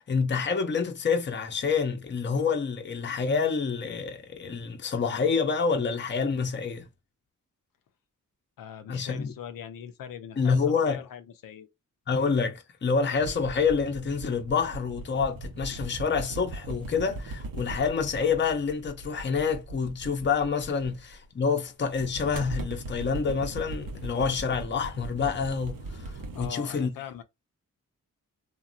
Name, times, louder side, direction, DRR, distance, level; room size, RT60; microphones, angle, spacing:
voice 1, 0.0-6.9 8.9-9.3 10.4-11.0 12.1-26.9, left 5 dB, 35° left, 0.6 m, -27 dB
voice 2, 8.6-11.7 20.8-21.0 26.3-27.2, left 9 dB, 90° left, 0.5 m, -41 dB
sound 1, 13.1-21.3 21.9-26.5, right 2 dB, 85° right, 0.7 m, -39 dB
2.9 x 2.2 x 2.4 m
cardioid pair, 55°, 33 cm